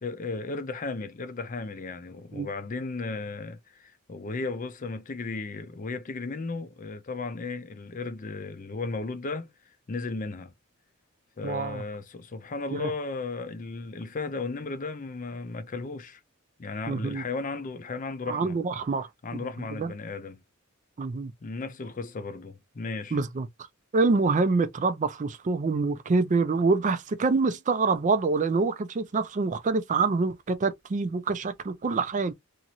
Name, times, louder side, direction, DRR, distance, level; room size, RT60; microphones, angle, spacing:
voice 1, 0.0-9.5 9.9-10.5 11.4-16.2 16.6-18.6 19.2-20.4 21.4-23.2, left 3 dB, 35° left, 0.5 m, -35 dB
voice 2, 11.4-11.8 12.8-12.9 16.9-17.2 18.3-19.4 19.8-19.9 21.0-21.3 23.1-23.5 23.9-32.3, right 4 dB, 35° right, 0.4 m, -26 dB
2.9 x 2.5 x 2.8 m
head